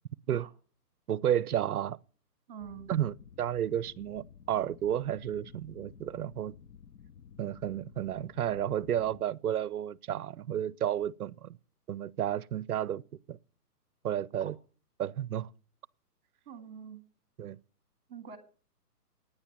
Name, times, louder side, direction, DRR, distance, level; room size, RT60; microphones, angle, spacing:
voice 1, 1.1-2.0 2.9-6.5 7.4-11.6 11.9-13.0 13.3-13.4 14.0-14.6 15.0-15.5 17.4-17.6, right 10 dB, 65° right, 0.6 m, -32 dB
voice 2, 2.5-2.9 14.3-14.5 16.5-17.0 18.1-18.4, right 8 dB, 35° right, 1.9 m, -45 dB
sound 1, 2.6-9.2, left 7 dB, 75° left, 0.8 m, -53 dB
9.8 x 8.8 x 7.2 m
hypercardioid pair, 170°, 48 cm